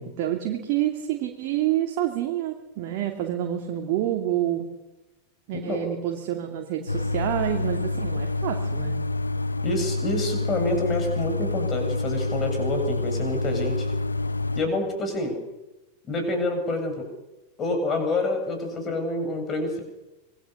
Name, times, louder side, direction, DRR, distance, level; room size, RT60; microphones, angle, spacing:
voice 1, 0.2-4.7 5.5-8.9, right 12 dB, 45° right, 3 dB, 2.6 m, -28 dB
voice 2, 5.5-5.8 9.6-13.9 14.6-15.4 16.1-17.1 17.6-19.8, left 2 dB, 25° left, 5 dB, 7.7 m, -27 dB
sound 1, 6.9-14.6, left 2 dB, 80° left, 1.3 m, -27 dB
26.0 x 21.0 x 6.9 m, 1.0 s
figure-of-eight pair, 90°, 0 cm